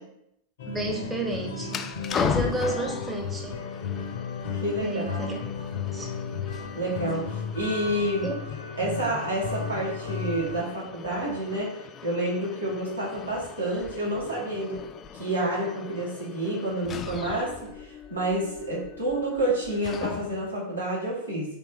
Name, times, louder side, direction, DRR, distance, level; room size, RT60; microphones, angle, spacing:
sound 1, 0.6-10.6, left 5 dB, 60° left, 0.6 m, -34 dB
voice 1, 0.7-3.6 4.8-5.4 5.9-6.1 8.2-8.4, right 2 dB, 15° right, 1 dB, 0.7 m, -31 dB
sound 2, 1.6-20.6, left 7 dB, 25° left, 0.3 m, -38 dB
voice 2, 4.6-5.2 6.7-8.3 8.8-14.8 15.1-21.6, right 1 dB, 80° right, -6 dB, 1.6 m, -29 dB
4.3 x 2.8 x 3.6 m, 0.79 s
figure-of-eight pair, 90°, 0 cm